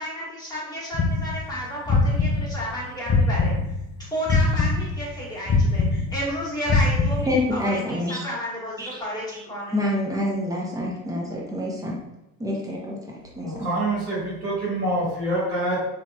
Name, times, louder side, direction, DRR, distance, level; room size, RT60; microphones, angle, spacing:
voice 1, 0.0-3.5 4.0-9.8, equal, 10° left, -7 dB, 1.5 m, -32 dB
sound 1, 0.9-3.9 4.3-7.6, left 3 dB, 25° left, 0.5 m, -22 dB
voice 2, 7.3-8.2 8.8-9.0 9.7-11.9 12.4-13.0 13.4-13.7, left 1 dB, 10° right, -3 dB, 0.8 m, -27 dB
voice 3, 13.4-15.8, right 1 dB, 80° right, -9 dB, 1.4 m, -26 dB
2.9 x 2.8 x 2.3 m, 0.94 s
figure-of-eight pair, 65°, 46 cm